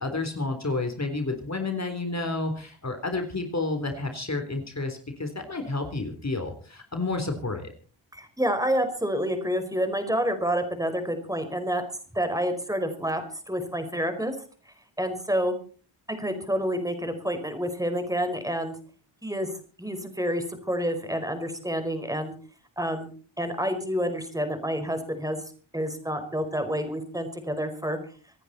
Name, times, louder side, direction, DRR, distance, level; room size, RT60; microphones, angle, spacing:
voice 1, 0.0-7.7, left 3 dB, 35° left, 5 dB, 3.6 m, -30 dB
voice 2, 8.1-11.8 12.1-14.3 15.0-15.5 16.1-18.7 19.2-19.5 19.8-22.3 22.8-23.1 23.4-25.4 25.7-28.0, equal, 5° right, 7 dB, 4.9 m, -28 dB
27.0 x 10.0 x 4.3 m, 0.40 s
cardioid pair, 70°, 48 cm